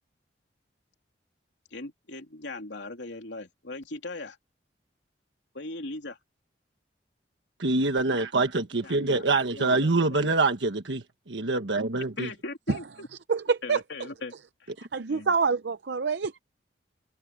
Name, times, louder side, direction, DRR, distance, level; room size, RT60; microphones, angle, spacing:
voice 1, 1.7-4.4 5.5-6.2 8.8-9.2 9.5-10.4 12.2-13.1 13.6-14.3 14.6-14.7 15.1-15.3, left 2 dB, 85° left, 3.1 m, -39 dB
voice 2, 7.6-12.3, right 3 dB, 85° right, 1.4 m, -25 dB
voice 3, 13.3-13.8 14.8-16.4, right 5 dB, 65° right, 0.6 m, -26 dB
head